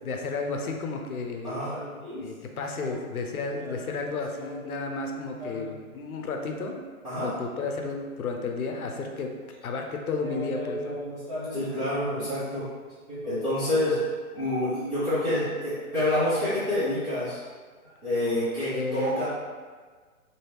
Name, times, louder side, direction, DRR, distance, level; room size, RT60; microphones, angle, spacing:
voice 1, 0.0-1.5 2.2-6.8 7.2-9.3 9.6-10.9 18.7-19.3, left 4 dB, 75° left, 3 dB, 0.7 m, -32 dB
voice 2, 1.4-2.3 2.6-3.0 3.4-4.7 5.4-5.7 7.0-7.3 10.2-12.7 13.1-14.0 14.3-17.4 18.0-19.3, left 1 dB, 10° right, -17 dB, 0.6 m, -29 dB
2.8 x 2.7 x 3.1 m, 1.5 s
hypercardioid pair, 145°, 43 cm